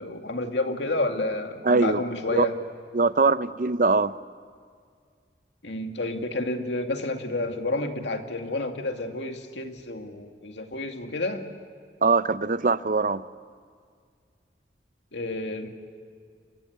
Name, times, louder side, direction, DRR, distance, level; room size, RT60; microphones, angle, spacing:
voice 1, 0.0-2.6 5.6-11.5 15.1-15.7, left 2 dB, 90° left, 5 dB, 2.3 m, -30 dB
voice 2, 1.6-2.0 2.3-2.5 2.9-4.1 12.0-13.2, right 4 dB, 50° right, 14 dB, 0.6 m, -22 dB
29.5 x 24.0 x 8.2 m, 2.1 s
head